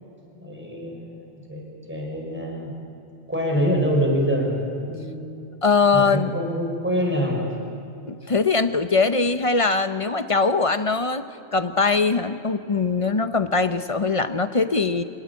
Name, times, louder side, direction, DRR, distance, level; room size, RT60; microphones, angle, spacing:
voice 1, 0.4-2.7 3.3-5.2 5.9-7.5, equal, 10° right, 0 dB, 5.3 m, -25 dB
voice 2, 5.6-6.3 8.1-11.2 11.5-15.0, left 4 dB, 30° left, 10 dB, 0.7 m, -21 dB
27.0 x 19.0 x 8.4 m, 2.8 s
omnidirectional pair, 1.3 m